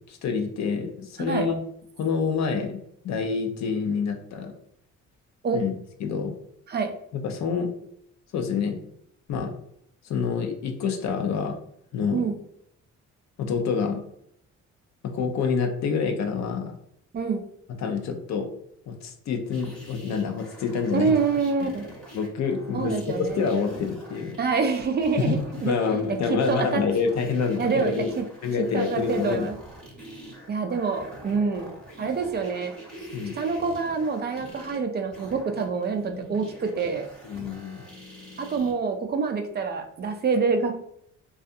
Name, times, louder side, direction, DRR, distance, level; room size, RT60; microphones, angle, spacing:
voice 1, 0.1-1.6 2.0-4.5 5.5-5.8 6.0-6.3 7.2-7.7 8.3-8.8 9.3-9.5 10.0-11.6 11.9-12.2 13.4-14.0 15.0-16.8 17.8-18.5 18.9-21.1 21.6-21.7 22.1-24.4 25.2-28.1 28.4-29.5 33.1-33.3 37.2-37.8, left 5 dB, 65° left, 5 dB, 0.6 m, -27 dB
sound 1, 19.5-38.7, right 1 dB, 5° left, 0.9 m, -44 dB
voice 2, 20.9-21.9 22.7-23.5 24.4-25.7 26.1-26.8 27.6-28.2 28.7-29.5 30.5-31.7 32.0-32.7 33.3-37.1 38.4-40.7, right 5 dB, 35° right, 5 dB, 0.4 m, -26 dB
2.6 x 2.4 x 2.5 m, 0.71 s
cardioid pair, 90°, 30 cm